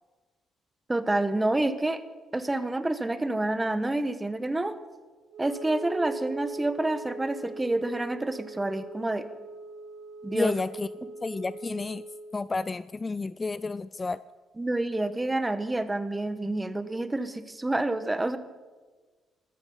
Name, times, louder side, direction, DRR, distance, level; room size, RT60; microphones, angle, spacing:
voice 1, 0.9-2.0 2.3-4.8 5.4-9.3 10.2-10.5 14.6-18.4, right 2 dB, 15° right, 12 dB, 1.0 m, -28 dB
Wind instrument woodwind instrument, 5.3-12.4, right 2 dB, 85° right, 1.9 m, -41 dB
voice 2, 10.3-10.9 11.2-12.0 12.3-14.2, left 3 dB, 25° left, 17 dB, 0.3 m, -30 dB
13.5 x 13.5 x 5.4 m, 1.3 s
cardioid pair, 90°, 0 cm